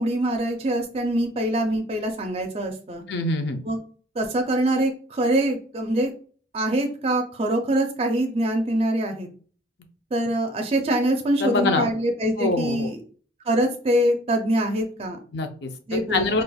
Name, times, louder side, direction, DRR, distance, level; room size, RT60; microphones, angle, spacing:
voice 1, 0.0-3.0 3.6-3.8 4.2-6.1 6.5-9.3 10.1-13.0 13.5-15.2 15.9-16.4, right 1 dB, 35° right, 4 dB, 0.4 m, -24 dB
voice 2, 3.1-3.6 11.4-11.9 12.4-12.9 15.3-16.4, left 3 dB, 75° left, 6 dB, 0.5 m, -25 dB
4.1 x 2.4 x 2.3 m, 0.42 s
head